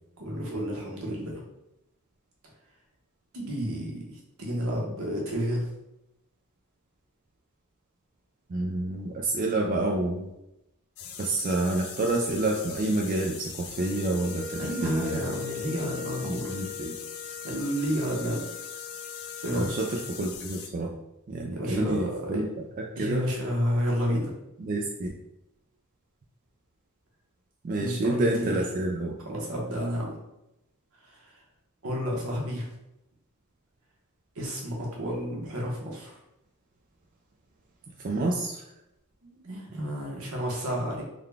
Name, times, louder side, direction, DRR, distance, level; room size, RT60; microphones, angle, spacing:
voice 1, 0.2-1.3 3.3-4.0 4.4-5.7 14.6-16.5 17.4-18.4 19.4-19.7 21.5-22.4 23.0-24.3 27.8-28.6 29.3-30.1 31.8-32.7 34.4-36.2 39.2-41.0, equal, 70° right, -2 dB, 1.0 m, -30 dB
voice 2, 8.5-10.3 11.2-15.4 16.2-16.9 19.5-20.9 21.3-22.5 23.0-23.3 24.6-25.1 27.6-29.1 38.0-38.6, right 2 dB, 40° right, 0 dB, 0.3 m, -28 dB
sound 1, 11.0-20.7, left 7 dB, 70° left, 0.4 m, -42 dB
Wind instrument woodwind instrument, 13.8-20.2, left 7 dB, 10° left, 0.6 m, -40 dB
3.7 x 2.2 x 3.4 m, 0.89 s
head